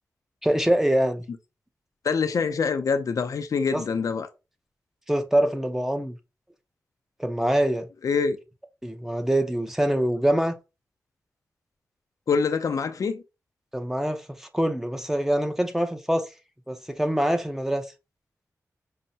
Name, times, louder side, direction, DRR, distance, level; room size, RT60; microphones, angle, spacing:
voice 1, 0.4-1.2 3.7-3.8 5.1-6.2 7.2-7.9 8.8-10.6 13.7-16.3 16.7-17.9, right 1 dB, 5° right, 0.6 m, -24 dB
voice 2, 2.0-4.3 8.0-8.4 12.3-13.2, left 5 dB, 70° left, 0.4 m, -25 dB
5.4 x 2.1 x 2.6 m
wide cardioid pair, 80°, 6 cm